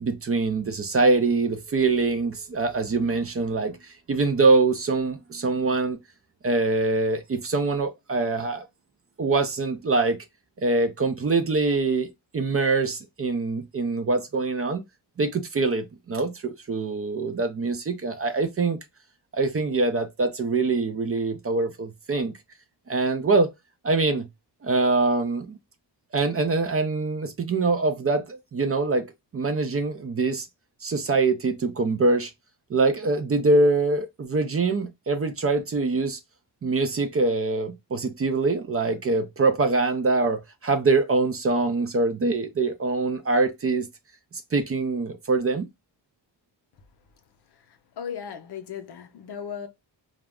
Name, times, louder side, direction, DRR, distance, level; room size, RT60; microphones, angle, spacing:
voice 1, 0.0-6.0 6.4-8.7 9.2-10.2 10.6-14.8 15.2-18.8 19.3-22.3 22.9-23.5 23.8-24.3 24.6-25.6 26.1-29.1 29.3-30.5 30.8-32.3 32.7-36.2 36.6-43.9 44.3-45.7, right 3 dB, 35° right, 0.4 m, -24 dB
voice 2, 47.5-49.7, left 8 dB, 65° left, 0.6 m, -37 dB
2.3 x 2.0 x 3.4 m
cardioid pair, 95°, 43 cm